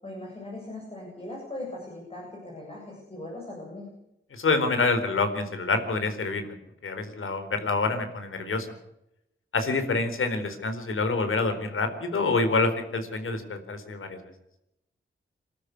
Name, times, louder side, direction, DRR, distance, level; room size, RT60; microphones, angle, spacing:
voice 1, 0.0-3.9, left 1 dB, 30° left, -2 dB, 7.8 m, -39 dB
voice 2, 4.3-6.5 6.8-8.7 9.5-14.2, left 3 dB, 80° left, 8 dB, 4.2 m, -27 dB
27.0 x 13.5 x 8.4 m, 0.85 s
wide cardioid pair, 155°, 21 cm